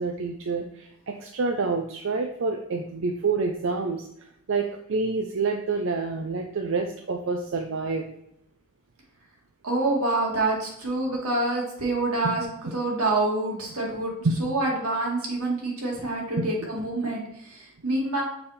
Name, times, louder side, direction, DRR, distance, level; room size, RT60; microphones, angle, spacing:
voice 1, 0.0-8.1 12.2-12.3 14.2-14.4 16.4-16.5, right 4 dB, 60° right, 4 dB, 0.5 m, -28 dB
voice 2, 9.6-14.1 14.4-18.2, right 2 dB, 85° right, -2 dB, 1.9 m, -27 dB
6.8 x 3.5 x 4.1 m, 0.78 s
head